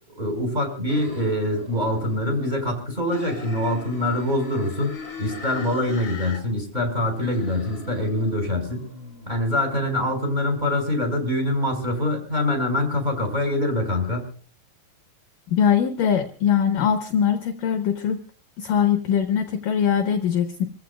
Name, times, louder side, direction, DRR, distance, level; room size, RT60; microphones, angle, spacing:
voice 1, 0.1-4.9 5.2-8.9 9.3-14.3, left 1 dB, 10° right, 2 dB, 5.1 m, -24 dB
sound 1, 0.9-2.7 3.1-6.4 6.7-9.3, left 2 dB, 20° left, 4.2 m, -40 dB
voice 2, 15.5-18.2 18.6-20.7, left 8 dB, 70° left, 6 dB, 2.2 m, -22 dB
28.0 x 15.0 x 2.4 m, 0.43 s
omnidirectional pair, 5.0 m